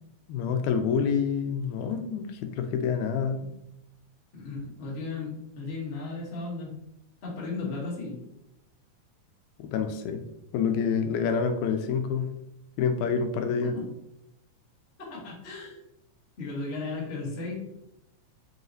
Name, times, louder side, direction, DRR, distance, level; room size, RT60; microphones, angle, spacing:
voice 1, 0.3-3.5 9.6-10.2 10.5-12.3 12.8-13.7, left 6 dB, 85° left, 7 dB, 1.9 m, -27 dB
voice 2, 4.3-6.7 7.2-8.2 13.6-13.9 15.0-15.8 16.4-17.5, left 3 dB, 50° left, -5 dB, 0.7 m, -35 dB
5.5 x 3.0 x 2.6 m, 0.83 s
omnidirectional pair, 3.4 m